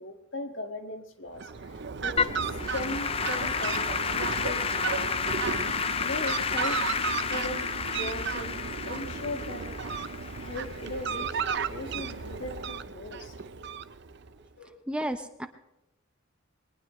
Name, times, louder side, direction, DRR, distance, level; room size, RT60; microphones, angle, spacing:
voice 1, 0.0-5.4 6.0-6.8 7.3-7.6 7.9-8.6 8.9-9.8 10.4-13.3 14.6-14.8, left 2 dB, 60° left, 5 dB, 1.9 m, -38 dB
Fowl, 1.3-14.3, right 5 dB, 55° right, 0.7 m, -34 dB
Applause / Keyboard (musical), 2.2-11.5, left 6 dB, 30° left, 0.6 m, -31 dB
voice 2, 14.9-15.5, right 1 dB, 5° right, 8 dB, 0.7 m, -32 dB
22.5 x 19.5 x 3.2 m, 0.92 s
head